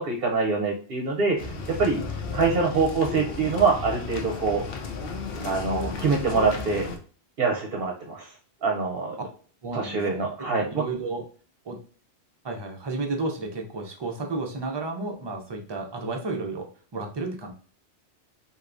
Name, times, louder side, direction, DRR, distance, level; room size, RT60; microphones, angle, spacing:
voice 1, 0.0-2.0 2.3-4.6 5.4-6.9 7.4-8.3 8.6-9.2 9.7-10.8, right 4 dB, 60° right, 1 dB, 0.8 m, -25 dB
sound 1, 1.4-7.0, left 4 dB, 65° left, 0.8 m, -34 dB
voice 2, 9.6-10.3 10.6-11.2 11.7-11.8 12.4-16.7 16.9-17.5, right 3 dB, 35° right, 2 dB, 0.5 m, -32 dB
3.4 x 2.8 x 2.5 m, 0.42 s
omnidirectional pair, 1.1 m